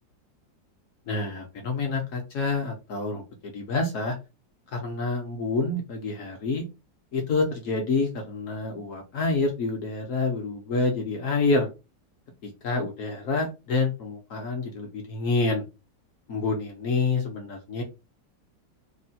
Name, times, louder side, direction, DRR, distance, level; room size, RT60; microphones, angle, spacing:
voice 1, 1.1-4.1 4.7-6.6 7.1-11.7 12.4-15.6 16.3-17.8, left 3 dB, 70° left, 2 dB, 0.7 m, -27 dB
3.1 x 2.1 x 2.7 m, 0.27 s
omnidirectional pair, 2.1 m